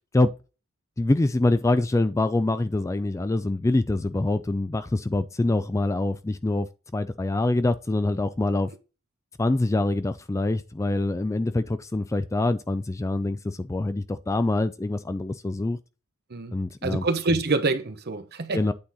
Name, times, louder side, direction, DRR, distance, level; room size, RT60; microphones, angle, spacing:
voice 1, 1.0-6.7 6.9-8.7 9.4-15.8 16.5-17.0 18.5-18.7, left 2 dB, 15° left, 0.3 m, -25 dB
voice 2, 16.3-18.7, right 3 dB, 50° right, 0.9 m, -27 dB
8.6 x 3.9 x 4.1 m
head